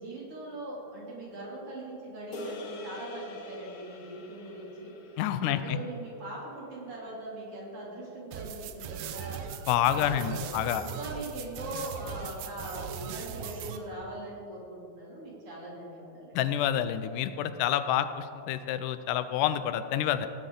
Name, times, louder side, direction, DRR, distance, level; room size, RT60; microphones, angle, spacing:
voice 1, 0.0-4.9 5.4-9.4 9.8-16.4, right 1 dB, 45° right, -5 dB, 3.7 m, -41 dB
sound 1, 2.3-6.8, left 3 dB, 65° left, 1.3 m, -45 dB
voice 2, 5.2-5.8 9.7-10.9 16.3-20.3, left 11 dB, 90° left, 12 dB, 2.2 m, -28 dB
sound 2, 8.3-13.8, right 8 dB, 80° right, 2.2 m, -39 dB
17.5 x 9.9 x 3.8 m, 2.7 s
omnidirectional pair, 3.6 m